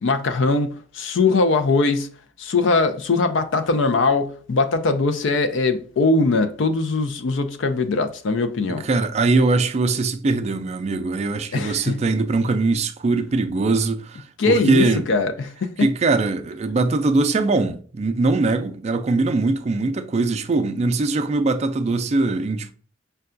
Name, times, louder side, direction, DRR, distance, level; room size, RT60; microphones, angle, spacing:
voice 1, 0.0-2.1 2.4-8.8 11.5-12.0 14.4-15.9, left 3 dB, 70° left, 0.4 m, -21 dB
voice 2, 8.8-15.1 15.8-22.7, right 3 dB, 35° right, 0.4 m, -21 dB
5.5 x 2.3 x 2.5 m
head